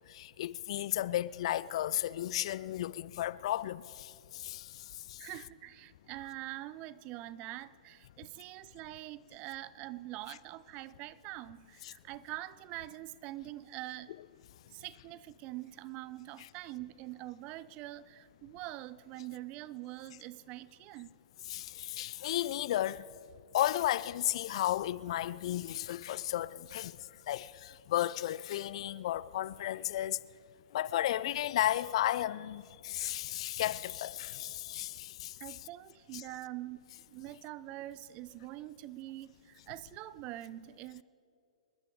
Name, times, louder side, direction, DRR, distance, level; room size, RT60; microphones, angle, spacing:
voice 1, 0.1-4.8 5.1-5.2 11.8-11.9 16.4-16.5 21.5-23.0 23.5-26.9 27.3-30.2 30.7-35.6 36.1-36.2, left 13 dB, 50° left, 0.4 m, -34 dB
voice 2, 5.2-14.1 14.7-21.1 35.4-36.8 37.1-41.0, right 16 dB, 35° right, 0.5 m, -44 dB
27.0 x 12.0 x 3.6 m
figure-of-eight pair, 115°, 4 cm